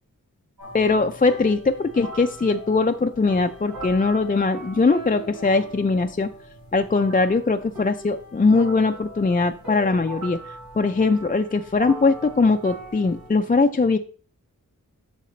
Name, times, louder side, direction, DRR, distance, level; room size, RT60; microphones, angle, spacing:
sound 1, 0.6-13.3, right 1 dB, 85° right, 3.4 m, -39 dB
voice 1, 0.7-6.3 6.7-10.4 10.8-14.0, left 3 dB, 25° left, 6 dB, 0.4 m, -21 dB
7.7 x 6.5 x 3.1 m, 0.41 s
wide cardioid pair, 70°, 34 cm